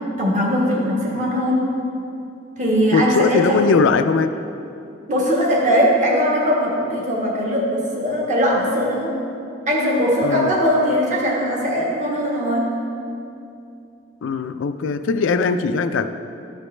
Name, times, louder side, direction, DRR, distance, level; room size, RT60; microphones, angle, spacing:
voice 1, 0.2-1.6 2.6-3.6 5.1-9.1 9.7-12.7, equal, 35° right, -4 dB, 1.5 m, -20 dB
voice 2, 2.9-4.4 10.2-10.6 14.2-16.1, left 5 dB, 75° left, 10 dB, 0.3 m, -20 dB
12.5 x 5.1 x 3.2 m, 2.6 s
head